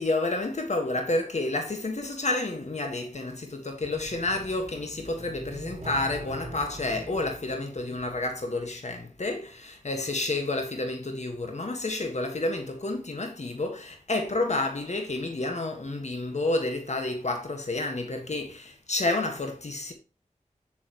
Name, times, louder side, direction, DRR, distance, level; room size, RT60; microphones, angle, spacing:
voice 1, 0.0-19.9, left 2 dB, 60° left, 1.7 m, -30 dB
sound 1, 3.8-8.8, right 1 dB, 55° right, 3.5 m, -43 dB
9.3 x 7.3 x 3.1 m
wide cardioid pair, 75°, 13 cm